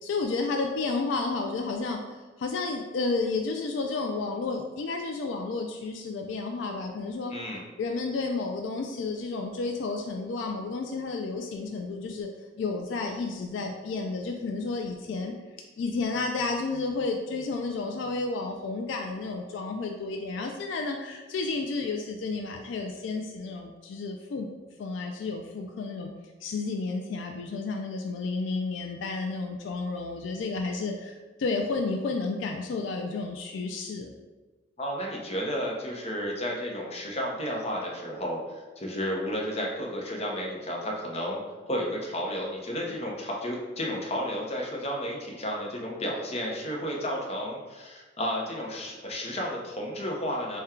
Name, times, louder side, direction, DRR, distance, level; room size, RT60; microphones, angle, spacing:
voice 1, 0.0-7.4 7.8-12.3 12.6-15.3 15.8-24.5 24.8-26.1 26.4-34.1, left 3 dB, 70° left, 3 dB, 0.3 m, -31 dB
voice 2, 7.3-7.6 34.8-41.4 41.7-50.6, equal, 35° left, -2 dB, 0.7 m, -32 dB
4.3 x 2.2 x 3.6 m, 1.3 s
head